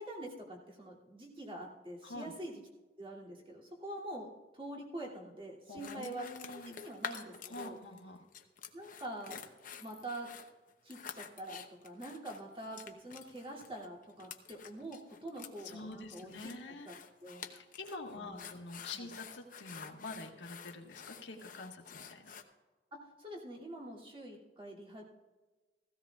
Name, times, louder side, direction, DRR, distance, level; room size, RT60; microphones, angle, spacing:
voice 1, 0.0-2.6 3.0-6.3 6.8-7.8 8.7-9.4 9.8-10.3 10.8-16.3 16.9-17.0 17.2-17.5 18.1-18.6 18.9-19.1 22.9-25.0, right 1 dB, 30° right, -4 dB, 2.6 m, -45 dB
voice 2, 5.7-6.8 7.4-8.2 15.6-16.9 17.5-22.3, left 2 dB, 80° left, 2 dB, 1.5 m, -46 dB
sound 1, 5.8-8.0 8.3-22.4, left 7 dB, 50° left, 0.8 m, -49 dB
16.0 x 16.0 x 2.4 m, 1.2 s
head